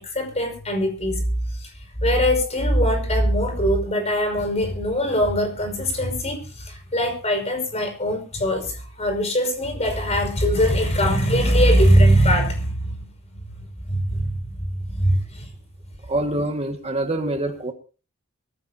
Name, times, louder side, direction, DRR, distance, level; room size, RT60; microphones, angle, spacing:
voice 1, 0.0-1.7 2.0-13.0 13.3-15.5, equal, 30° left, 5 dB, 5.5 m, -21 dB
voice 2, 16.0-17.7, right 1 dB, 30° right, 4 dB, 1.8 m, -25 dB
24.0 x 15.0 x 2.8 m, 0.35 s
head